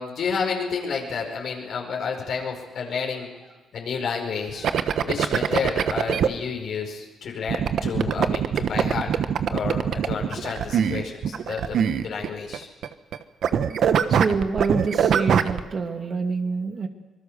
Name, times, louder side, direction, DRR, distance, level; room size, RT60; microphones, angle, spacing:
voice 1, 0.0-3.3 3.7-4.7 5.0-9.1 9.5-12.7, left 5 dB, 65° left, 0 dB, 5.0 m, -30 dB
sound 1, 4.6-6.3 7.5-13.2 13.4-15.6, right 8 dB, 65° right, 1.2 m, -23 dB
voice 2, 13.8-16.9, right 4 dB, 40° right, 5 dB, 2.6 m, -27 dB
26.0 x 20.5 x 6.6 m, 1.3 s
cardioid pair, 90°, 0 cm